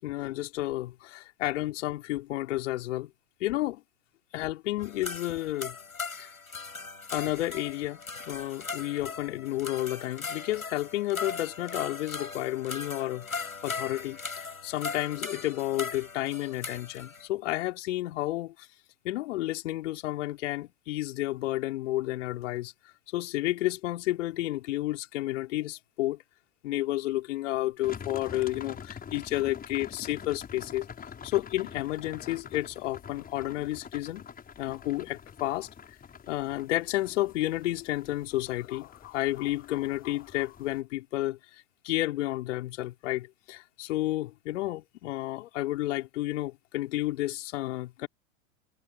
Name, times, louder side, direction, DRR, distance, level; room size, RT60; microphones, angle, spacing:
voice 1, 0.0-3.1 3.4-3.8 4.3-5.8 6.2-6.3 7.1-18.7 19.0-22.7 23.1-26.2 26.6-30.9 31.2-34.3 34.6-35.7 36.3-41.4 41.8-48.1, left 16 dB, 60° left, 5.2 m, -31 dB
sound 1, 4.8-17.3, left 4 dB, 90° left, 7.8 m, -39 dB
sound 2, 27.8-40.8, left 7 dB, 20° left, 6.7 m, -46 dB
figure-of-eight pair, 95°, 41 cm